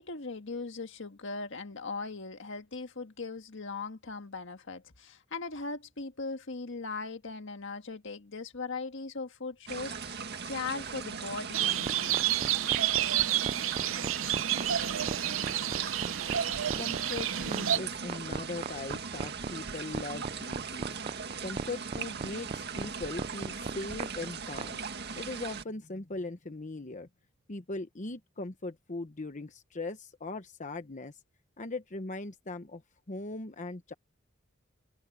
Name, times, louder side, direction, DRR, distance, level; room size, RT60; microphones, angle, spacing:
voice 1, 0.0-12.4, left 4 dB, 70° left, 1.7 m, -39 dB
sound 1, 9.7-25.6, right 5 dB, 55° right, 2.0 m, -39 dB
sound 2, 11.5-17.8, right 11 dB, 80° right, 0.7 m, -30 dB
sound 3, 11.8-24.7, right 4 dB, 35° right, 0.4 m, -36 dB
voice 2, 16.8-21.0 21.4-24.8 25.2-27.1 27.5-31.2 31.6-32.8 33.1-33.9, left 2 dB, 40° left, 1.0 m, -39 dB
head